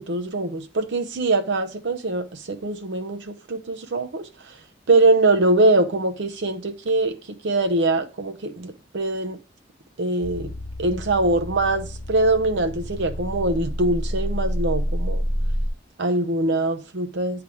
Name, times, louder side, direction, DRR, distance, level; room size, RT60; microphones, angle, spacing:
voice 1, 0.0-4.5 4.9-7.2 7.4-9.4 10.0-10.5 10.8-15.2 16.0-17.4, right 2 dB, 80° right, 0.7 m, -23 dB
sound 1, 10.2-15.7, equal, 15° left, 2.3 m, -28 dB
8.4 x 3.4 x 4.5 m
head